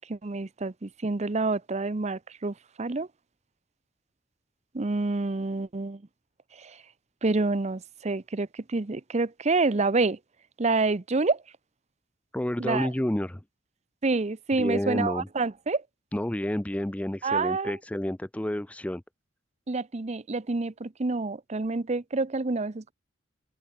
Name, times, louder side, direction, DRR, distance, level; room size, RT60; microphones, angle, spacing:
voice 1, 0.0-3.1 4.7-6.0 6.6-6.8 7.2-10.2 10.6-11.4 12.6-12.9 14.0-15.8 17.2-17.7 19.7-22.9, right 3 dB, 35° right, 0.7 m, -28 dB
voice 2, 12.3-13.4 14.6-15.3 16.1-19.0, left 1 dB, 5° left, 0.5 m, -30 dB
head